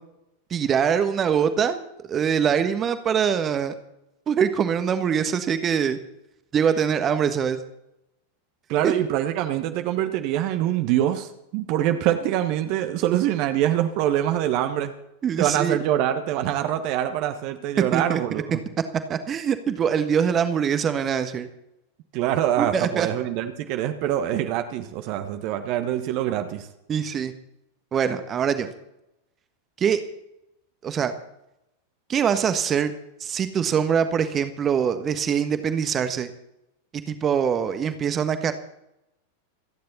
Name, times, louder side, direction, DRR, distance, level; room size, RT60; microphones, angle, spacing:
voice 1, 0.5-3.7 4.3-6.0 6.5-7.6 8.8-8.9 15.2-15.8 17.9-18.4 19.1-21.5 22.6-23.1 26.9-27.3 27.9-28.7 29.8-30.0 30.8-31.1 32.1-32.9 33.2-36.3 37.1-38.5, right 7 dB, 25° right, 9 dB, 1.4 m, -23 dB
voice 2, 8.7-14.9 15.4-18.6 22.1-26.7, right 11 dB, 45° right, 8 dB, 1.3 m, -24 dB
28.0 x 10.5 x 4.2 m, 0.85 s
figure-of-eight pair, 90°, 0 cm